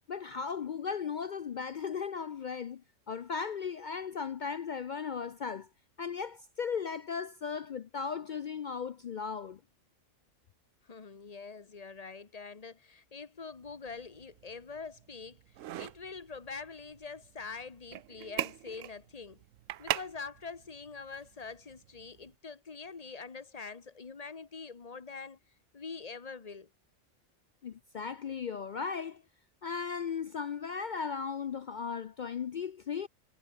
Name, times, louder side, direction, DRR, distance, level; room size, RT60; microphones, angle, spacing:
voice 1, 0.1-2.8 3.1-5.7 6.0-9.6 27.6-29.2 29.6-33.1, left 6 dB, 60° left, 0.5 m, -36 dB
voice 2, 10.8-15.4 15.8-19.4 19.8-25.4 25.7-26.7, left 4 dB, 30° left, 1.1 m, -44 dB
sound 1, 13.5-22.4, right 13 dB, 80° right, 1.0 m, -42 dB
omnidirectional pair, 1.3 m